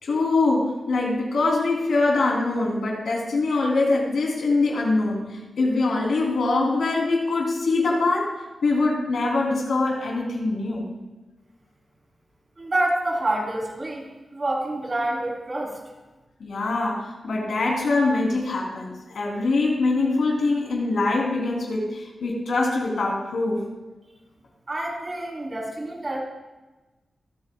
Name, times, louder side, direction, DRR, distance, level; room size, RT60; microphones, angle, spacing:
voice 1, 0.0-8.3 8.6-10.9 16.4-23.6, left 3 dB, 85° left, -2 dB, 3.3 m, -23 dB
voice 2, 12.6-14.0 14.3-15.8 24.7-26.2, right 1 dB, 35° right, -3 dB, 3.6 m, -27 dB
26.0 x 8.9 x 2.4 m, 1.1 s
wide cardioid pair, 150°, 0 cm